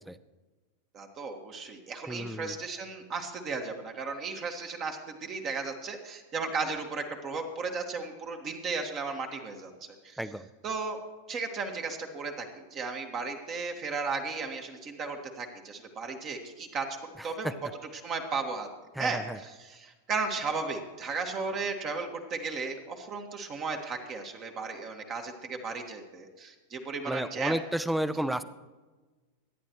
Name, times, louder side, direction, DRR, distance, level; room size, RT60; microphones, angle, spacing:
voice 1, 0.9-9.7 10.0-10.2 10.6-11.0 11.3-16.9 17.2-17.5 17.9-18.7 19.0-27.6, right 4 dB, 30° right, 4 dB, 1.6 m, -35 dB
voice 2, 2.1-2.6 10.2-10.5 17.2-17.5 18.9-19.4 27.0-28.4, right 1 dB, 5° right, 15 dB, 0.6 m, -32 dB
23.5 x 10.0 x 3.0 m, 1.3 s
figure-of-eight pair, 90°, 0 cm